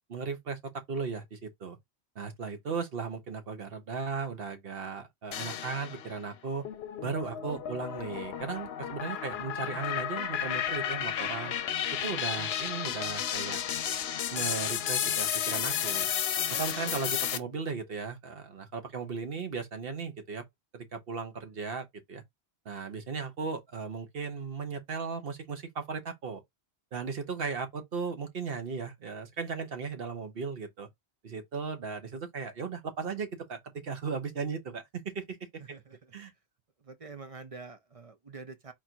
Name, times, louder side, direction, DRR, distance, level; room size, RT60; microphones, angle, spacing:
voice 1, 0.1-1.8 2.1-6.6 7.0-11.6 12.0-13.6 14.3-16.1 16.5-20.4 20.7-22.2 22.6-26.4 26.9-30.9 31.2-35.5 36.1-36.3, right 5 dB, 60° right, 1.1 m, -36 dB
sound 1, 5.3-6.2 6.7-17.4, left 9 dB, 70° left, 0.8 m, -32 dB
voice 2, 35.6-36.2 36.8-38.7, right 4 dB, 40° right, 0.7 m, -46 dB
4.3 x 2.5 x 4.4 m
omnidirectional pair, 1.1 m